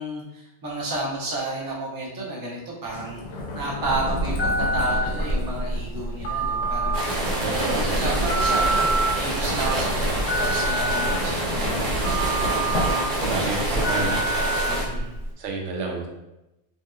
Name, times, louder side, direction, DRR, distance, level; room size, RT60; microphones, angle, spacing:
voice 1, 0.0-8.9 9.2-12.3 12.7-14.2 14.6-15.2, right 2 dB, 25° right, -4 dB, 0.5 m, -32 dB
sound 1, 2.8-13.8, left 1 dB, 75° left, 0.9 m, -32 dB
Telephone, 3.8-15.3, right 1 dB, 45° left, 0.6 m, -26 dB
sound 2, 6.9-14.9, right 2 dB, 50° right, 0.8 m, -27 dB
voice 2, 7.4-7.8 12.4-12.6 13.2-14.1 15.4-16.1, right 3 dB, 80° right, 1 dB, 0.9 m, -29 dB
2.9 x 2.6 x 2.3 m, 0.93 s
omnidirectional pair, 1.2 m